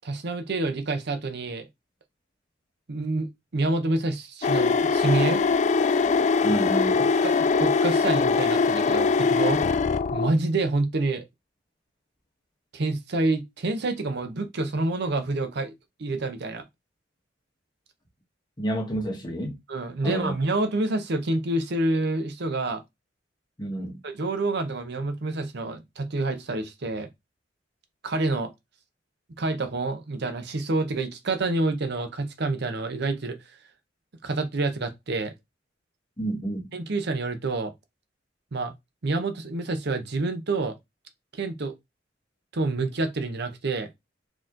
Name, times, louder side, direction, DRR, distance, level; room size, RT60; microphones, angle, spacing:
voice 1, 0.0-1.7 2.9-3.3 3.5-5.4 7.2-9.6 10.1-11.2 12.7-15.7 16.0-16.6 19.7-22.8 24.0-27.1 28.0-28.5 29.4-33.4 34.2-35.3 36.7-37.7 38.5-38.7 39.0-40.8 41.3-41.7 42.5-43.9, right 2 dB, 60° right, 0.7 m, -27 dB
sound 1, 4.4-10.3, left 4 dB, 40° left, 0.3 m, -22 dB
voice 2, 6.4-7.0 18.6-19.6 20.0-20.3 23.6-24.0 36.2-36.7, right 1 dB, 25° left, 1.4 m, -29 dB
4.2 x 3.0 x 3.7 m
head